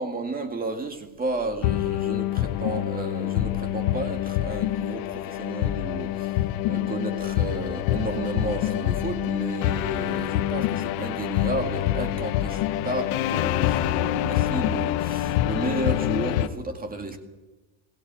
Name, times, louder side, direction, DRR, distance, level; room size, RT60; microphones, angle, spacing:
voice 1, 0.0-17.2, right 2 dB, 20° right, 5 dB, 2.1 m, -32 dB
sound 1, 1.6-16.5, left 13 dB, 80° left, 1.2 m, -26 dB
22.5 x 16.5 x 9.1 m, 1.1 s
cardioid pair, 155°, 45 cm